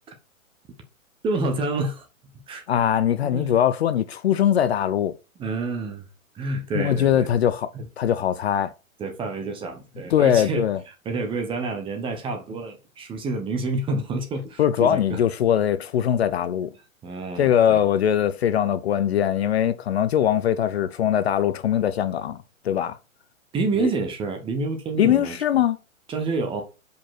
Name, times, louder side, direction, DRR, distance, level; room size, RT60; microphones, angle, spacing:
voice 1, 1.2-2.0 2.5-2.6 3.2-3.6 5.4-6.0 6.3-7.3 7.7-7.8 9.0-10.6 11.0-15.2 17.0-17.8 23.5-25.4 26.1-26.6, right 3 dB, 10° right, 1.0 m, -28 dB
voice 2, 2.7-5.1 6.7-8.7 10.1-10.8 14.6-16.7 17.4-23.0 23.8-23.9 25.0-25.8, left 10 dB, 50° left, 0.6 m, -21 dB
5.3 x 4.3 x 5.8 m
hypercardioid pair, 130°, 41 cm